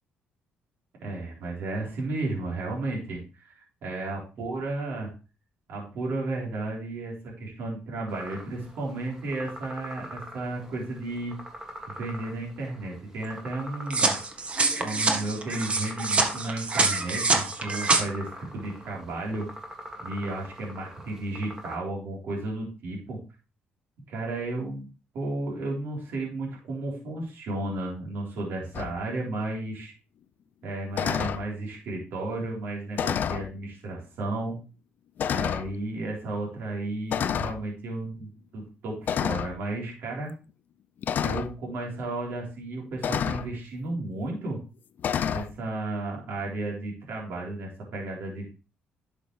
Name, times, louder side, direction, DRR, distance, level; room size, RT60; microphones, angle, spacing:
voice 1, 1.0-5.1 5.7-11.4 11.9-14.2 14.8-18.3 18.5-19.5 20.0-23.2 24.1-24.9 25.1-29.9 30.6-34.6 35.3-40.3 41.2-44.6 45.3-48.5, right 2 dB, 70° right, -3 dB, 3.8 m, -33 dB
sound 1, 8.1-21.7, equal, 15° right, 2.2 m, -44 dB
sound 2, 13.9-18.0, right 3 dB, 30° right, 1.5 m, -25 dB
sound 3, 28.7-28.9 30.9-31.4 32.9-33.5 34.3-34.4 35.2-35.7 37.1-37.6 39.1-39.5 41.0-41.5 43.0-43.5 45.0-45.5, left 8 dB, 55° left, 0.5 m, -28 dB
11.0 x 6.5 x 3.3 m, 0.33 s
cardioid pair, 105°, 4 cm